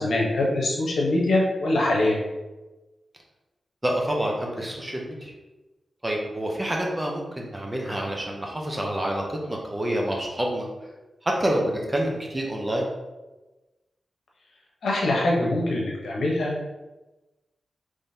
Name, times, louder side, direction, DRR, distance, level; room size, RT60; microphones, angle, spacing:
voice 1, 0.0-2.2 14.8-16.5, left 2 dB, 85° left, -3 dB, 0.9 m, -23 dB
voice 2, 3.8-5.3 6.0-10.7 11.2-12.9, right 1 dB, 15° right, -1 dB, 0.7 m, -27 dB
3.7 x 3.2 x 2.7 m, 1.1 s
wide cardioid pair, 120°, 0 cm